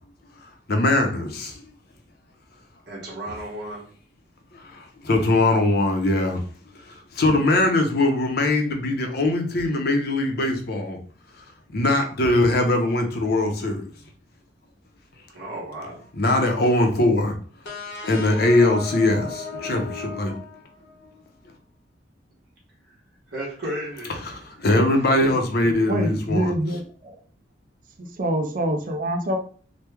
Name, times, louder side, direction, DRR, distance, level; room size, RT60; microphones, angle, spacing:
voice 1, 0.7-1.6 4.5-6.4 6.8-11.0 11.7-13.9 16.2-17.3 18.1-20.3 24.2-26.5, left 2 dB, 55° left, 4 dB, 0.6 m, -21 dB
voice 2, 2.9-3.8 15.3-16.0 23.3-24.1 24.9-25.2 27.0-27.1, right 1 dB, 60° right, -5 dB, 1.1 m, -34 dB
sound 1, 17.6-21.2, left 4 dB, 90° left, 1.0 m, -36 dB
voice 3, 25.9-26.8 28.0-29.4, right 1 dB, 45° right, 4 dB, 0.4 m, -25 dB
3.0 x 2.2 x 3.4 m, 0.43 s
head